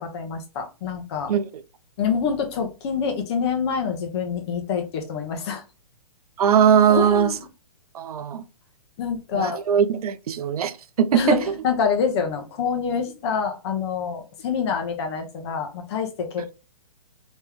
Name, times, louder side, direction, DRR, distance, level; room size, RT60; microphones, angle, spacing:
voice 1, 0.0-1.3 2.0-5.6 6.9-7.3 9.0-9.7 11.1-16.5, left 6 dB, 45° left, 1.0 m, -26 dB
voice 2, 1.3-1.6 6.4-7.4 7.9-8.4 9.3-11.4, right 8 dB, 70° right, 0.5 m, -20 dB
3.4 x 3.1 x 3.5 m
hypercardioid pair, 140°, 20 cm